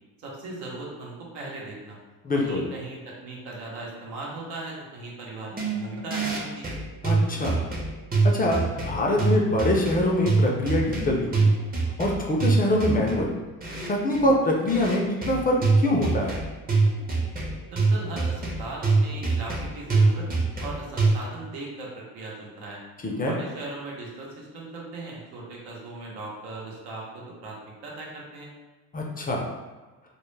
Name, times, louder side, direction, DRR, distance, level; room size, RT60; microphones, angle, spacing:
voice 1, 0.2-2.0 2.3-6.7 17.7-20.3 20.6-22.8 23.1-28.5, right 2 dB, 85° right, -3 dB, 0.8 m, -38 dB
voice 2, 2.2-2.7 7.0-7.6 8.3-11.5 12.0-13.3 13.9-16.4 23.0-23.4 28.9-29.5, left 1 dB, 25° left, -1 dB, 0.4 m, -24 dB
sound 1, 5.5-21.1, right 3 dB, 25° right, 0.6 m, -25 dB
2.2 x 2.0 x 3.1 m, 1.2 s
supercardioid pair, 85°, 36 cm